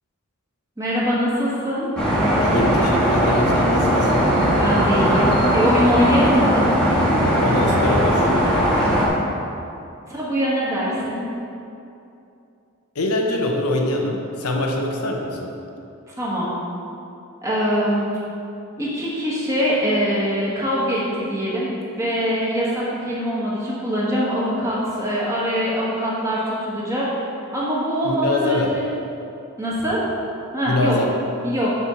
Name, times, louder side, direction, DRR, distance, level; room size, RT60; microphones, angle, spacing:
voice 1, 0.8-1.9 4.6-6.7 10.1-11.3 16.2-16.5 17.4-18.1 18.8-21.7 22.0-27.3 27.5-28.9 29.6-30.0 30.5-31.0 31.4-31.7, equal, 15° right, -7 dB, 1.4 m, -23 dB
sound 1, 2.0-9.1, equal, 5° left, 1.3 m, -18 dB
voice 2, 2.4-4.3 7.4-8.3 12.9-15.5 28.0-28.7 30.7-31.1, left 1 dB, 85° left, 1 dB, 0.9 m, -24 dB
6.9 x 4.5 x 5.6 m, 2.7 s
head